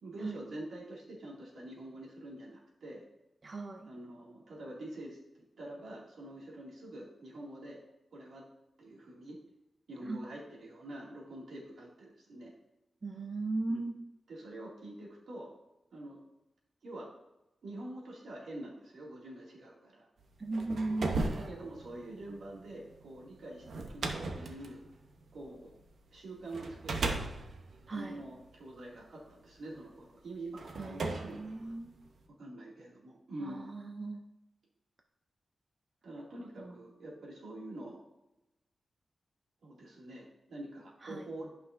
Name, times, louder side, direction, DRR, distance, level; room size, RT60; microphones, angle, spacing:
voice 1, 0.0-3.1 3.9-7.8 8.1-8.5 8.8-9.4 9.9-12.5 13.7-13.8 14.3-15.5 15.9-16.2 16.8-17.1 17.6-20.1 21.0-24.8 25.3-25.7 26.1-27.1 27.9-31.7 32.4-33.6 36.0-38.0 39.6-41.5, right 1 dB, 85° right, -4 dB, 2.3 m, -46 dB
voice 2, 3.4-3.9 10.1-10.2 13.0-13.9 20.4-21.2 27.9-28.2 30.8-31.9 33.4-34.2 36.6-36.8 41.0-41.2, right 2 dB, 35° right, 4 dB, 0.5 m, -37 dB
sound 1, 20.3-25.9 26.5-29.0 29.8-29.9 30.6-32.3, right 3 dB, 70° right, 0.8 m, -38 dB
12.0 x 5.6 x 2.6 m, 0.93 s
wide cardioid pair, 175°, 0 cm